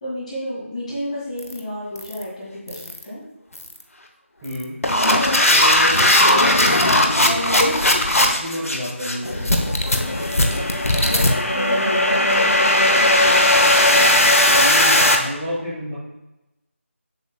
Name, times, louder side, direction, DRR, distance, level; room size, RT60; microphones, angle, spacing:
voice 1, 0.0-3.2 11.0-13.1, equal, 30° left, -6 dB, 2.3 m, -31 dB
sound 1, 1.4-1.6 2.0-2.2 2.7-3.0 3.6-3.8 4.4-15.2, left 1 dB, 85° left, 1.0 m, -17 dB
voice 2, 4.4-4.8 5.5-7.6 8.1-10.2 13.9-14.2 14.4-15.9, left 1 dB, 15° right, -10 dB, 1.8 m, -30 dB
7.2 x 6.5 x 2.3 m, 0.96 s
figure-of-eight pair, 165°, 7 cm